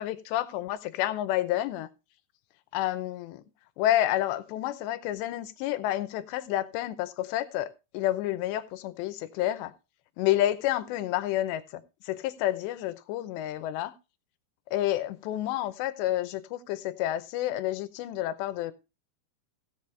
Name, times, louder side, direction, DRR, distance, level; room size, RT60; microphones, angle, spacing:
voice 1, 0.0-1.9 2.7-3.4 3.8-9.7 10.2-13.9 14.7-18.7, left 13 dB, 90° left, 3.0 m, -29 dB
16.0 x 8.2 x 3.3 m
omnidirectional pair, 4.9 m